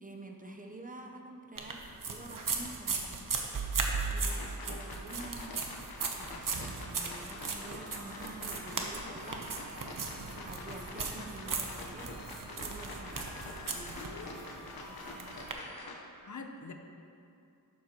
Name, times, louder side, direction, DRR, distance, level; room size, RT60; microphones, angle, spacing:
voice 1, 0.0-1.8 2.1-3.2 3.5-3.6 4.1-4.4 4.6-5.6 6.2-9.5 10.1-12.1 12.5-13.3 13.7-15.4, right 2 dB, 25° right, 2 dB, 0.7 m, -48 dB
sound 1, 1.6-15.5, right 4 dB, 60° right, 0.9 m, -37 dB
sound 2, 4.3-16.0, left 2 dB, 80° left, 1.0 m, -46 dB
sound 3, 7.1-15.9, left 1 dB, 25° left, 1.6 m, -55 dB
voice 2, 13.9-14.4 16.2-16.7, left 4 dB, 55° left, 5 dB, 0.7 m, -45 dB
11.0 x 7.3 x 2.9 m, 2.6 s
wide cardioid pair, 95°, 36 cm